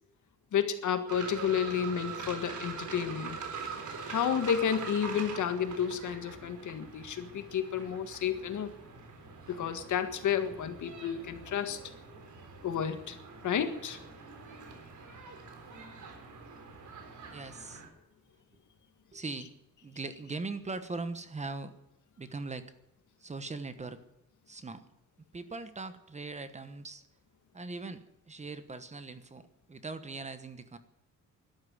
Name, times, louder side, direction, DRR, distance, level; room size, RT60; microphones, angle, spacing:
voice 1, 0.5-3.4 4.1-8.7 9.5-11.8 12.6-13.2 13.4-14.0, left 8 dB, 70° left, 8 dB, 1.8 m, -31 dB
sound 1, 1.1-17.9, right 5 dB, 70° right, 3.9 m, -44 dB
voice 2, 17.3-17.8 19.1-19.5 19.8-21.7 22.2-22.7 23.2-24.0 24.5-24.8 25.3-27.0 27.5-29.4 29.7-30.8, right 3 dB, 20° right, 11 dB, 1.1 m, -40 dB
12.5 x 12.0 x 9.5 m, 0.88 s
wide cardioid pair, 155°, 31 cm